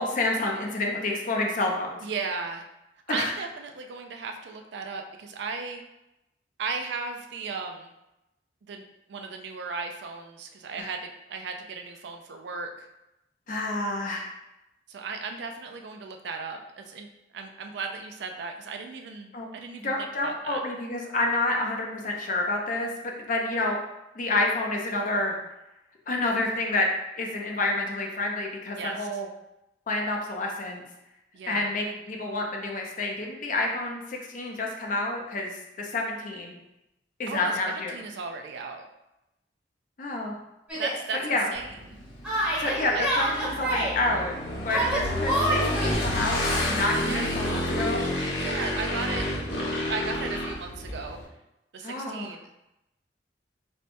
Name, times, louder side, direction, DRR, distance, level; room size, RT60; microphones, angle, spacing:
voice 1, 0.0-2.0 3.1-3.3 10.8-10.9 13.5-14.3 19.3-19.5 19.8-23.8 24.2-25.4 26.1-26.9 27.2-29.3 29.9-30.8 31.5-36.6 37.2-38.0 40.0-40.3 41.1-41.5 42.6-44.3 44.6-48.1 51.8-52.3, left 2 dB, 45° left, 1 dB, 0.5 m, -29 dB
voice 2, 2.0-2.7 3.1-5.8 6.6-7.9 8.7-12.9 14.9-17.1 17.3-19.9 20.2-20.6 28.8-29.2 31.3-31.7 37.3-38.8 40.7-42.0 42.6-43.1 47.0-47.3 48.3-49.3 49.9-51.2 51.7-52.5, right 4 dB, 70° right, 5 dB, 0.4 m, -36 dB
Yell, 40.7-41.0 42.2-43.9 44.7-45.9, right 1 dB, 5° right, 1.0 m, -27 dB
Motorcycle / Engine, 41.5-51.2, left 1 dB, 80° left, 1.2 m, -30 dB
4.3 x 2.2 x 2.6 m, 0.91 s
head